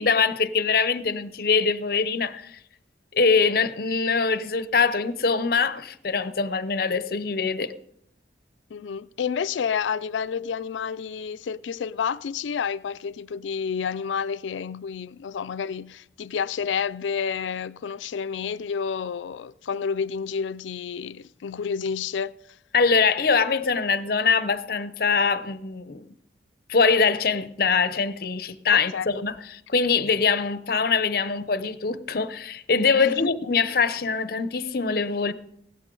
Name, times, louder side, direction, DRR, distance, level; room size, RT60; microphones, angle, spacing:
voice 1, 0.0-2.6 3.1-7.7 22.7-26.1 26.7-35.3, left 5 dB, 55° left, 0.7 m, -23 dB
voice 2, 8.7-22.3 28.7-29.1 33.0-33.3, left 6 dB, 85° left, 0.4 m, -30 dB
16.5 x 12.5 x 3.8 m
head